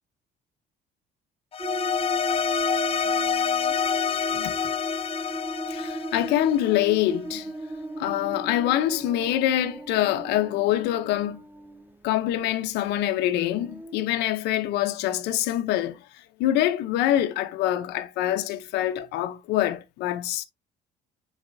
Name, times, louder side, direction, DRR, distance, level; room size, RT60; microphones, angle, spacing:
sound 1, 1.5-6.9, left 7 dB, 35° left, 0.6 m, -27 dB
sound 2, 1.6-11.9 13.4-14.0, right 2 dB, 10° right, 0.5 m, -36 dB
voice 1, 5.7-7.5 8.0-11.4 12.0-20.5, left 13 dB, 85° left, 0.8 m, -25 dB
10.5 x 4.1 x 2.7 m
cardioid pair, 110°, 17 cm